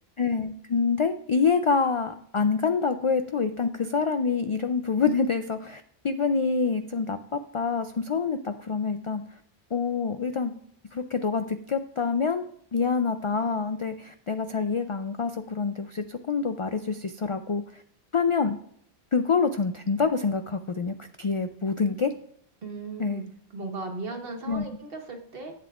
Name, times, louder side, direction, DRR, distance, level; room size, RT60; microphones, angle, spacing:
voice 1, 0.2-9.2 9.7-10.5 10.9-12.4 12.7-17.6 18.1-18.6 19.1-22.1 23.0-23.2 24.5-24.7, left 5 dB, 60° left, 9 dB, 0.3 m, -26 dB
voice 2, 22.6-23.2 23.5-25.5, right 3 dB, 65° right, 3 dB, 1.5 m, -37 dB
11.0 x 8.1 x 2.4 m, 0.66 s
omnidirectional pair, 1.1 m